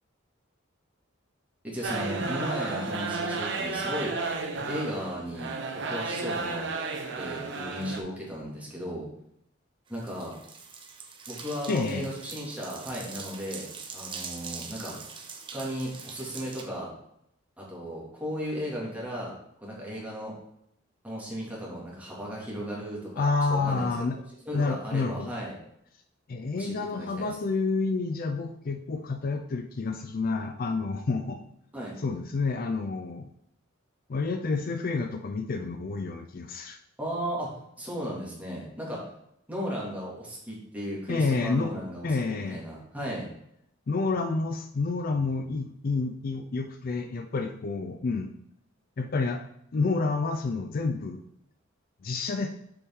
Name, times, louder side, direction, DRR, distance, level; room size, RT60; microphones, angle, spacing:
voice 1, 1.6-4.1 4.7-5.5 5.9-6.6 7.2-9.1 9.9-10.3 11.3-14.9 15.5-16.9 17.6-20.3 21.0-24.1 24.5-25.5 26.5-27.3 31.7-32.0 37.0-37.5 37.8-39.0 39.5-43.3, equal, 10° right, -5 dB, 2.2 m, -35 dB
sound 1, 1.8-8.0, right 3 dB, 65° right, 0.9 m, -32 dB
sound 2, 9.9-16.6, right 5 dB, 25° right, 0.8 m, -43 dB
voice 2, 11.7-12.1 23.2-24.2 24.5-25.3 26.3-31.4 32.0-33.3 34.1-36.8 41.1-41.7 42.0-42.6 43.9-48.3 49.0-49.4 49.7-51.2 52.0-52.5, left 3 dB, 45° left, 6 dB, 0.4 m, -29 dB
6.9 x 4.8 x 3.6 m, 0.75 s
head